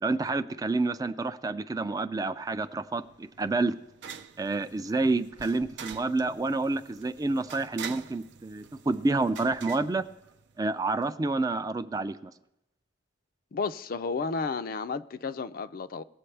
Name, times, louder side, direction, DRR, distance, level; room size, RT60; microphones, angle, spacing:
voice 1, 0.0-3.7 4.4-10.0 10.6-12.3, right 3 dB, 20° right, 0.3 m, -29 dB
sound 1, 2.5-10.8, right 6 dB, 70° right, 0.5 m, -46 dB
voice 2, 13.5-16.0, left 4 dB, 50° left, 0.4 m, -32 dB
19.5 x 7.6 x 3.3 m
head